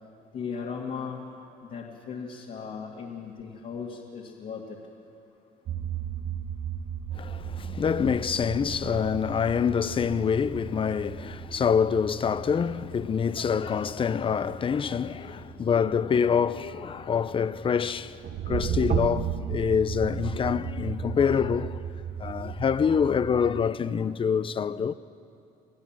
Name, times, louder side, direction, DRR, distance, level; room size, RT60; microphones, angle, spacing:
voice 1, 0.3-1.2 1.6-4.6, left 6 dB, 55° left, 2.3 m, -37 dB
sound 1, 5.7-23.6, right 8 dB, 65° right, 1.2 m, -35 dB
voice 2, 7.1-21.8 22.2-24.9, left 7 dB, 30° left, 0.6 m, -26 dB
27.0 x 16.5 x 7.5 m
cardioid pair, 110°, 17 cm